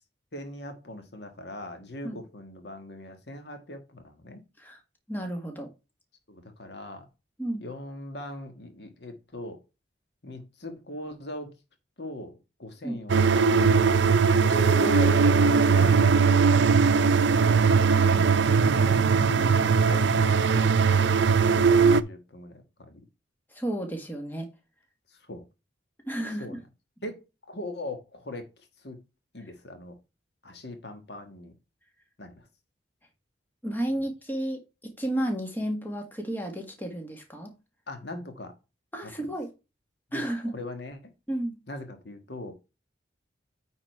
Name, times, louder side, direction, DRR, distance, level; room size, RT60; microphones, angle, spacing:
voice 1, 0.3-4.4 6.3-7.0 7.6-9.6 10.2-11.5 12.0-13.5 13.8-14.2 14.5-17.7 18.8-23.0 25.3-25.4 26.4-26.6 27.0-28.4 28.8-29.0 29.3-29.9 30.4-31.5 32.2-32.4 37.9-38.5 39.0-39.3 40.1-40.2 40.5-41.0 41.7-42.5, left 1 dB, 60° left, 1.5 m, -40 dB
voice 2, 5.1-5.7 7.4-7.6 12.8-13.0 18.0-18.3 23.5-24.5 26.1-26.6 33.6-37.5 38.9-39.5 40.1-40.6 41.3-41.6, right 1 dB, 10° left, 1.6 m, -32 dB
sound 1, 13.1-22.0, right 5 dB, 70° right, 0.5 m, -20 dB
Mallet percussion, 14.5-17.4, right 4 dB, 80° left, 2.9 m, -37 dB
9.3 x 4.0 x 4.5 m
head